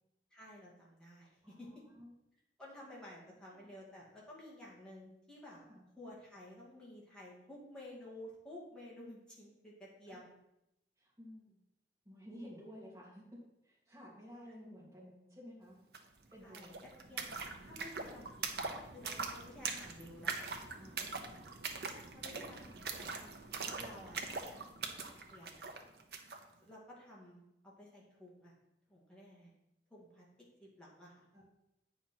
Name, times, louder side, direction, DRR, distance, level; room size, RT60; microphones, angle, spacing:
voice 1, 0.3-1.7 2.6-5.7 6.0-10.3 16.4-16.7 17.1-20.3 22.1-23.1 23.8-24.7 25.3-25.6 26.6-27.4 27.8-28.5 28.9-29.5 29.9-30.2 30.6-31.2, left 1 dB, 5° left, -6 dB, 2.1 m, -53 dB
voice 2, 1.4-2.1 3.4-3.7 5.7-5.8 10.1-10.2 11.0-11.6 12.0-15.8 16.3-16.8 20.8-21.5 31.3-31.4, equal, 15° right, -7 dB, 2.7 m, -54 dB
sound 1, 15.9-16.0 16.2-26.4, right 4 dB, 65° right, 0.9 m, -42 dB
8.5 x 5.6 x 4.5 m, 0.86 s
head